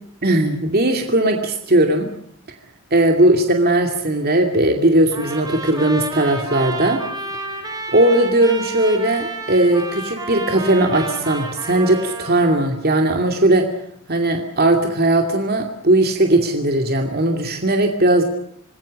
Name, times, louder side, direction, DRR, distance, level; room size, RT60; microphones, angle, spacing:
voice 1, 0.2-2.1 2.9-7.0 7.9-13.7 14.1-18.2, right 1 dB, 45° right, 3 dB, 2.5 m, -18 dB
Trumpet, 5.1-12.6, right 2 dB, 20° right, 4.6 m, -30 dB
26.5 x 20.5 x 6.4 m, 0.67 s
head